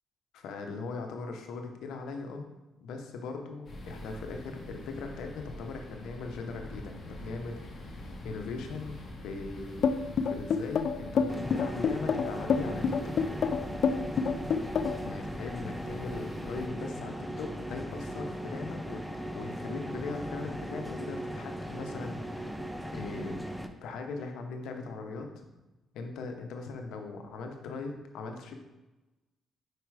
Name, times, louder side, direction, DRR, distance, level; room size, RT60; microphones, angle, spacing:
voice 1, 0.3-2.4 2.8-8.9 9.2-9.9 10.2-13.2 15.0-19.0 19.3-22.6 22.9-23.4 23.8-25.5 25.9-28.5, left 4 dB, 85° left, 4 dB, 0.8 m, -39 dB
sound 1, 3.6-16.7, left 1 dB, 45° left, 1.2 m, -45 dB
sound 2, 9.8-15.1, left 6 dB, 60° left, 0.4 m, -27 dB
sound 3, 11.3-23.7, equal, ahead, 0.5 m, -38 dB
4.9 x 4.7 x 4.7 m, 1.0 s
cardioid pair, 90°, 0 cm